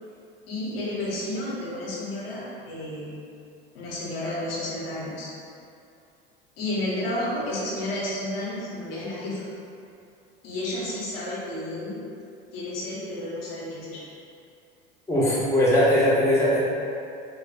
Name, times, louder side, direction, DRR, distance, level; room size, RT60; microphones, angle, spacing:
voice 1, 0.5-3.1 3.7-5.3 6.6-9.5 10.4-12.0 12.5-14.0, left 1 dB, 80° left, -6 dB, 0.9 m, -31 dB
voice 2, 15.1-16.6, left 1 dB, 10° left, -8 dB, 0.8 m, -20 dB
3.3 x 2.6 x 2.4 m, 2.6 s
hypercardioid pair, 85°, 29 cm